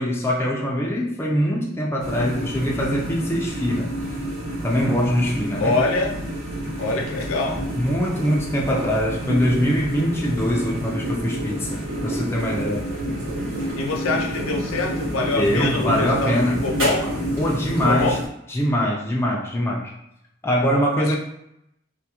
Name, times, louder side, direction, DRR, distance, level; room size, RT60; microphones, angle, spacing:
voice 1, 0.0-4.0 4.6-5.8 7.8-12.9 15.2-16.6 17.0-18.2 18.5-19.9 20.4-21.2, equal, 10° left, -3 dB, 0.3 m, -23 dB
sound 1, 2.0-18.3, equal, 80° right, 1.0 m, -29 dB
voice 2, 5.6-6.1 6.8-7.6 13.8-16.4 16.6-17.1 17.8-18.2 21.0-21.2, left 3 dB, 75° left, 2 dB, 0.5 m, -24 dB
2.5 x 2.3 x 2.8 m, 0.80 s
head